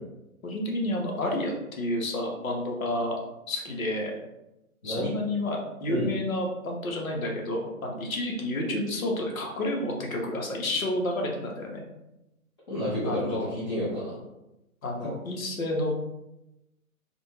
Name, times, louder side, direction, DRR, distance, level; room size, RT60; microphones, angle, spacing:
voice 1, 0.4-3.2 3.5-4.1 4.8-11.8 13.0-13.5 14.8-15.9, left 1 dB, 65° left, 0 dB, 0.9 m, -30 dB
voice 2, 12.7-14.2 15.0-15.1, equal, 15° left, -13 dB, 0.7 m, -30 dB
2.5 x 2.2 x 3.0 m, 0.92 s
figure-of-eight pair, 140°, 44 cm